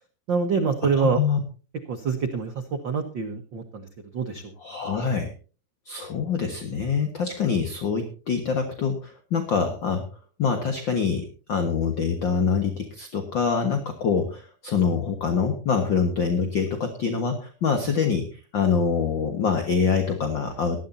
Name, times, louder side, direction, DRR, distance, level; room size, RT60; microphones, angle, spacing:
voice 1, 0.3-1.2 1.9-2.5 2.8-3.9 4.1-4.5, right 5 dB, 75° right, 5 dB, 1.0 m, -25 dB
voice 2, 1.0-1.4 4.6-5.3 5.8-10.0 10.4-20.8, left 6 dB, 50° left, 5 dB, 1.5 m, -25 dB
19.0 x 13.5 x 2.7 m, 0.36 s
omnidirectional pair, 4.1 m